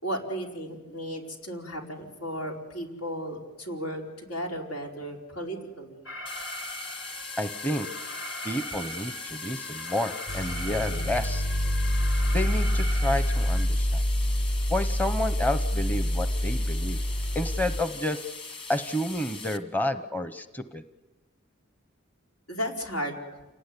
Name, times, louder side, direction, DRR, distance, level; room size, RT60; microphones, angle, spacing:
voice 1, 0.0-6.0 22.5-23.2, equal, 85° left, 1 dB, 4.7 m, -34 dB
Alarm, 6.1-13.7, left 1 dB, 65° left, 3.7 m, -40 dB
sound 1, 6.3-19.6, left 4 dB, 25° left, 1.8 m, -41 dB
voice 2, 7.4-7.9 8.4-11.5 12.3-14.0 14.7-17.0 17.3-18.3 18.7-20.8, left 1 dB, 10° left, 10 dB, 0.8 m, -30 dB
sound 2, 10.3-17.8, equal, 50° left, 1.3 m, -26 dB
28.5 x 18.5 x 9.9 m, 1.1 s
head